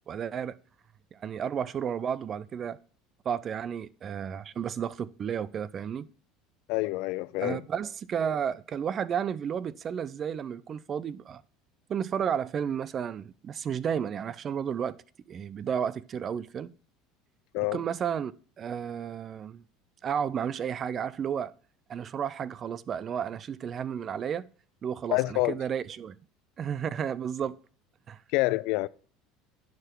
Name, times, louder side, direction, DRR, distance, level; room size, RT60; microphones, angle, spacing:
voice 1, 0.1-0.6 1.1-2.8 3.3-6.1 7.4-11.4 11.9-15.0 15.3-16.7 17.7-18.3 18.6-19.6 20.0-21.5 21.9-24.4 24.8-26.2 26.6-27.6 28.1-28.2, right 8 dB, 40° right, 0.4 m, -32 dB
voice 2, 6.7-7.6 17.5-17.8 25.1-25.6 28.3-28.9, left 21 dB, 70° left, 0.3 m, -27 dB
9.3 x 4.8 x 4.6 m
supercardioid pair, 100°, 0 cm